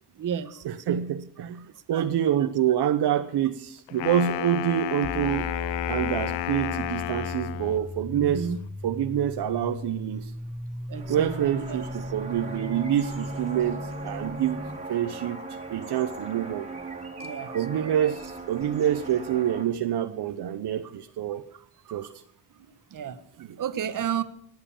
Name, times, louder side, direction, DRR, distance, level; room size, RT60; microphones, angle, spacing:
voice 1, 0.1-1.0 1.4-2.5 8.1-8.6 10.9-12.1 14.1-14.3 15.8-15.9 17.2-18.2 20.8-20.9 21.5-22.1 22.5-24.2, right 8 dB, 45° right, 12 dB, 1.1 m, -35 dB
voice 2, 0.6-1.6 1.9-5.5 5.9-8.4 8.8-10.3 11.1-14.6 14.9-16.7 17.5-18.2 18.5-21.5 21.9-22.1, right 10 dB, 65° right, 8 dB, 0.9 m, -26 dB
Wind instrument woodwind instrument, 3.9-7.9, left 16 dB, 85° left, 0.6 m, -31 dB
sound 1, 5.0-14.8, left 1 dB, 5° left, 0.5 m, -37 dB
sound 2, 10.9-19.6, right 3 dB, 15° right, 2.5 m, -39 dB
18.5 x 7.9 x 7.2 m, 0.66 s
cardioid pair, 110°, 43 cm